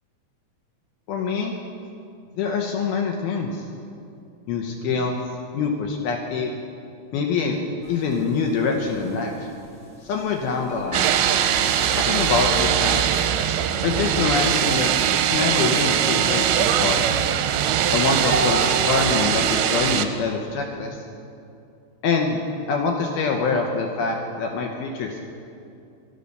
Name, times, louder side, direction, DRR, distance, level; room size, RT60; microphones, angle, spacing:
voice 1, 1.1-1.5 2.4-3.6 4.5-5.2 5.5-6.5 7.1-7.6 7.9-9.3 10.0-11.1 12.0-13.1 13.8-14.9 15.2-17.0 17.9-21.0 22.0-22.4 22.7-25.2, left 4 dB, 75° left, 2 dB, 2.4 m, -25 dB
sound 1, 7.8-19.3, right 2 dB, 25° right, 1.3 m, -36 dB
sound 2, 10.9-20.0, right 9 dB, 85° right, 2.8 m, -21 dB
12.0 x 11.5 x 6.5 m, 2.6 s
omnidirectional pair, 5.1 m